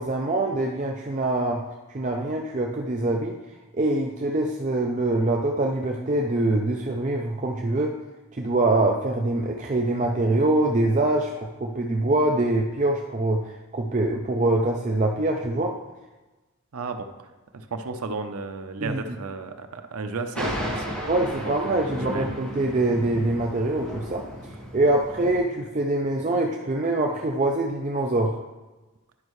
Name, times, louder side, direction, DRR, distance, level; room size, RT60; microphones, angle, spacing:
voice 1, 0.0-1.6 1.9-3.4 3.7-8.0 8.3-15.7 18.8-19.0 21.1-24.2 24.5-28.4, right 2 dB, 35° right, 1 dB, 0.5 m, -24 dB
voice 2, 16.7-17.1 17.5-20.9 21.4-22.4, right 3 dB, 85° right, 7 dB, 0.7 m, -33 dB
Thunder, 20.3-25.4, equal, 5° left, 1.6 m, -34 dB
11.5 x 5.3 x 3.1 m, 1.2 s
head